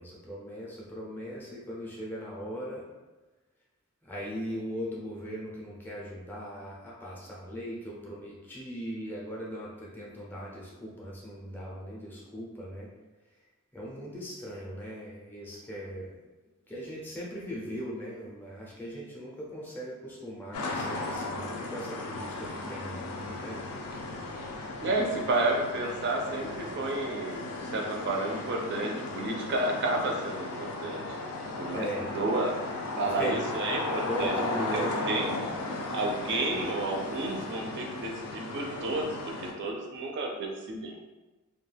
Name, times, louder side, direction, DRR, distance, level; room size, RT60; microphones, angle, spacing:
voice 1, 0.0-2.9 4.0-12.9 13.7-16.2 16.7-23.7 31.7-32.1 33.1-33.4 34.0-34.9, equal, 10° left, -5 dB, 0.5 m, -39 dB
sound 1, 20.5-39.5, left 2 dB, 85° left, 0.4 m, -36 dB
voice 2, 24.8-31.0 31.6-31.9 32.1-32.6 33.0-34.3 34.7-35.3 35.9-40.9, right 2 dB, 50° right, 1 dB, 0.4 m, -31 dB
2.3 x 2.2 x 3.2 m, 1.2 s
head